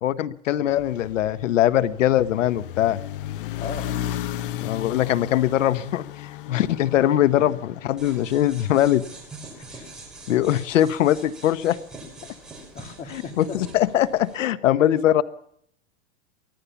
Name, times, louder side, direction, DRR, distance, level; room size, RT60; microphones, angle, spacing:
voice 1, 0.0-3.0 4.6-9.0 10.3-11.8 13.1-15.2, left 12 dB, 85° left, 14 dB, 1.2 m, -21 dB
sound 1, 0.7-9.0, left 11 dB, 45° left, 0.8 m, -34 dB
voice 2, 3.6-4.1 7.4-7.5 12.7-13.6, left 5 dB, 20° left, 7 dB, 2.3 m, -37 dB
sound 2, 8.0-14.4, right 2 dB, ahead, 4.5 m, -44 dB
24.0 x 16.0 x 7.1 m, 0.69 s
supercardioid pair, 175°, 37 cm